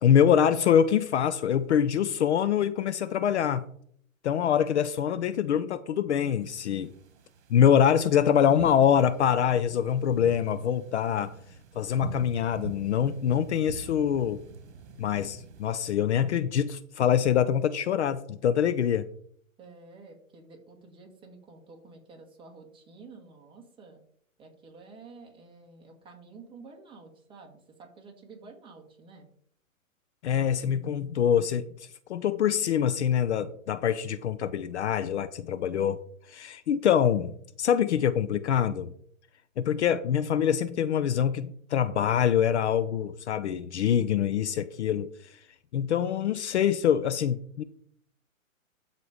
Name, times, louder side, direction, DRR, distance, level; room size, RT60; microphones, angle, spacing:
voice 1, 0.0-3.6 4.2-6.9 7.5-11.3 11.8-14.4 15.0-19.1 30.2-31.6 32.1-36.0 36.3-37.3 37.6-38.9 39.6-45.1 45.7-47.6, left 9 dB, 55° left, 13 dB, 0.6 m, -24 dB
sound 1, 6.4-15.8, right 3 dB, 55° right, 1.9 m, -44 dB
voice 2, 19.6-24.0 24.4-29.3, right 4 dB, 10° right, 1 dB, 1.6 m, -50 dB
12.5 x 4.3 x 4.9 m, 0.63 s
hypercardioid pair, 145°, 41 cm